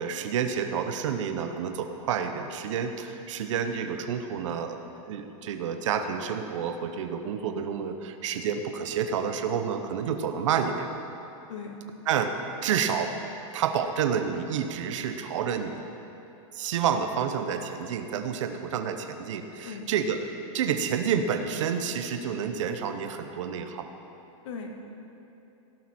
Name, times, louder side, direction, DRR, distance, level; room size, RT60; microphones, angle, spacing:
voice 1, 0.0-10.9 12.1-13.1 13.5-15.9 16.5-23.9, right 7 dB, 65° right, 7 dB, 1.0 m, -29 dB
voice 2, 11.5-11.7 19.6-19.9 24.4-24.7, left 5 dB, 60° left, 3 dB, 1.8 m, -38 dB
17.5 x 12.0 x 4.4 m, 2.9 s
supercardioid pair, 180°, 17 cm